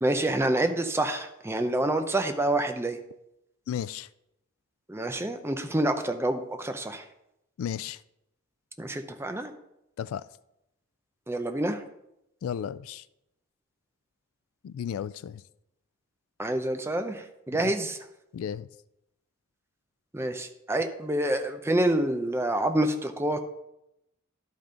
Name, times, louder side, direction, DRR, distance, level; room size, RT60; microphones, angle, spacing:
voice 1, 0.0-3.0 4.9-7.0 8.8-9.5 11.3-11.8 16.4-18.0 20.1-23.4, right 1 dB, 10° right, 7 dB, 0.6 m, -27 dB
voice 2, 3.7-4.1 7.6-8.0 10.0-10.2 12.4-13.0 14.6-15.4 18.3-18.7, left 9 dB, 85° left, 18 dB, 0.3 m, -33 dB
12.0 x 5.5 x 3.8 m, 0.86 s
head